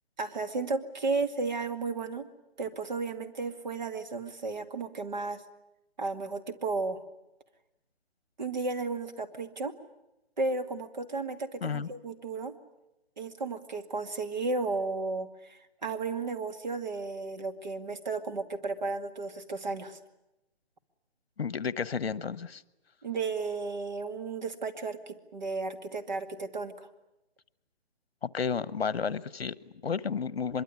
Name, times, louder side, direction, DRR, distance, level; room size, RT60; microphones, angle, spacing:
voice 1, 0.2-2.3 2.6-5.4 6.0-7.0 8.4-9.7 10.4-12.5 13.2-20.0 23.0-26.9, right 3 dB, 45° right, 7 dB, 2.3 m, -34 dB
voice 2, 21.4-22.6 28.2-30.6, left 6 dB, 65° left, 18 dB, 1.2 m, -32 dB
24.0 x 23.0 x 9.8 m, 0.92 s
hypercardioid pair, 175°, 32 cm